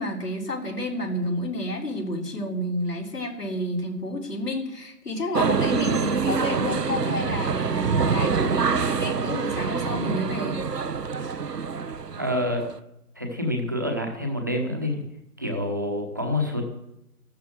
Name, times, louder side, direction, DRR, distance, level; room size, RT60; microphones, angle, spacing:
voice 1, 0.0-10.6, left 1 dB, 80° left, -1 dB, 4.4 m, -30 dB
sound 1, 5.3-12.8, right 5 dB, 90° right, 1.0 m, -26 dB
voice 2, 12.2-12.7 13.1-15.0 15.4-16.7, left 1 dB, 10° right, 2 dB, 1.1 m, -27 dB
13.0 x 13.0 x 7.7 m, 0.82 s
figure-of-eight pair, 165°, 47 cm